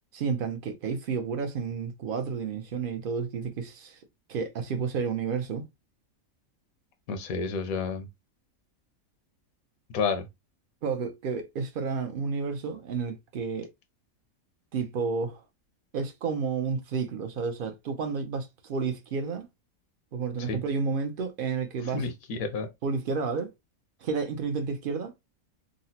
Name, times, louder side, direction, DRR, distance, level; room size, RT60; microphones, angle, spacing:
voice 1, 0.1-4.0 4.3-5.7 10.8-13.7 14.7-15.4 15.9-19.5 20.1-22.1 22.8-23.5 24.0-25.1, right 5 dB, 70° right, 0.5 m, -31 dB
voice 2, 7.1-8.1 9.9-10.2 20.4-20.6 21.9-22.7, left 5 dB, 80° left, 1.1 m, -30 dB
3.7 x 2.0 x 2.7 m
omnidirectional pair, 1.5 m